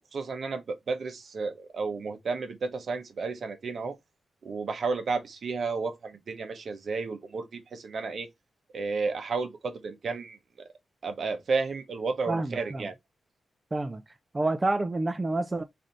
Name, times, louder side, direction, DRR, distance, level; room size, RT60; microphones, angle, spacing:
voice 1, 0.1-4.0 4.4-8.3 8.7-10.7 11.0-12.9, right 4 dB, 55° right, 0.7 m, -32 dB
voice 2, 12.3-12.9 13.7-14.0 14.3-15.6, right 2 dB, 20° right, 0.3 m, -28 dB
3.3 x 2.5 x 3.9 m
cardioid pair, 105°, 0 cm